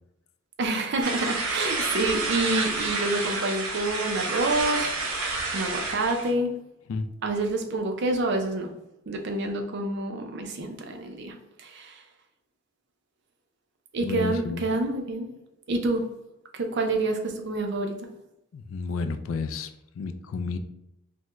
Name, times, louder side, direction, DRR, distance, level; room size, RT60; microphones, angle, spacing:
voice 1, 0.6-5.2 5.5-6.5 7.2-8.7 9.1-12.0 13.9-15.3 15.7-16.1 16.5-18.0, right 2 dB, 55° right, 4 dB, 0.5 m, -28 dB
sound 1, 1.0-6.3, right 3 dB, 85° right, 0.8 m, -29 dB
voice 2, 14.0-14.6 18.5-20.6, left 4 dB, 65° left, 9 dB, 0.3 m, -31 dB
3.4 x 2.1 x 2.9 m, 0.85 s
head